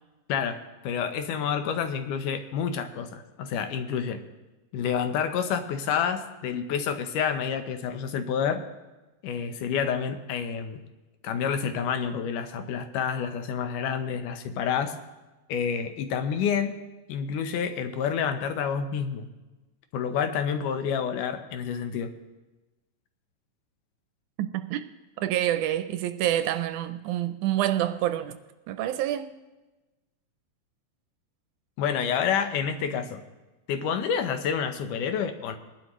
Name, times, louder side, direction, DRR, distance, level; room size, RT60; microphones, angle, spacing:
voice 1, 0.3-4.2 4.7-8.6 9.2-10.8 11.2-15.0 15.5-16.8 17.1-19.3 19.9-22.1 31.8-33.2 33.7-35.6, left 7 dB, 80° left, 2.4 m, -28 dB
voice 2, 24.4-24.8 25.2-28.4 28.7-29.4, right 12 dB, 80° right, 1.9 m, -27 dB
21.5 x 11.0 x 3.1 m
omnidirectional pair, 3.7 m